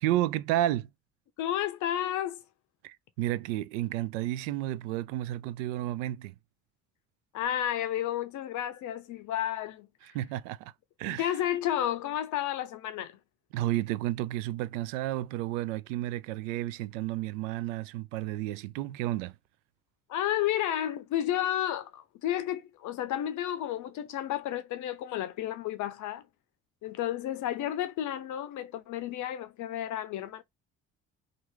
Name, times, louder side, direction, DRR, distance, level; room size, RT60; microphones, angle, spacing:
voice 1, 0.0-0.9 2.8-6.3 10.0-10.7 11.0-11.4 13.5-19.3, right 14 dB, 60° right, 0.5 m, -31 dB
voice 2, 1.4-2.4 7.3-9.9 11.1-13.2 20.1-26.2 26.8-30.4, left 11 dB, 45° left, 0.6 m, -32 dB
2.8 x 2.5 x 3.3 m
figure-of-eight pair, 50°, 41 cm